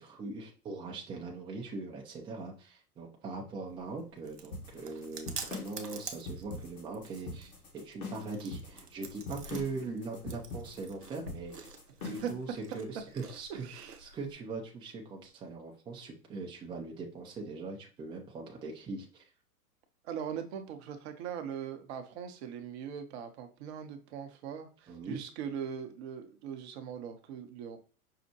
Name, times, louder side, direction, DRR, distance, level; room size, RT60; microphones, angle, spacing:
voice 1, 0.0-11.7 12.0-12.5 12.7-13.7 14.0-19.2 24.9-25.2, right 3 dB, 10° right, -1 dB, 0.5 m, -41 dB
Chewing mastication, 3.7-14.3, right 5 dB, 90° right, 0.7 m, -48 dB
sound 1, 4.5-12.4, left 3 dB, 60° left, 1.6 m, -43 dB
voice 2, 13.5-14.0 20.0-27.8, right 8 dB, 45° right, 7 dB, 0.7 m, -40 dB
5.6 x 2.1 x 2.8 m, 0.38 s
figure-of-eight pair, 100°, 46 cm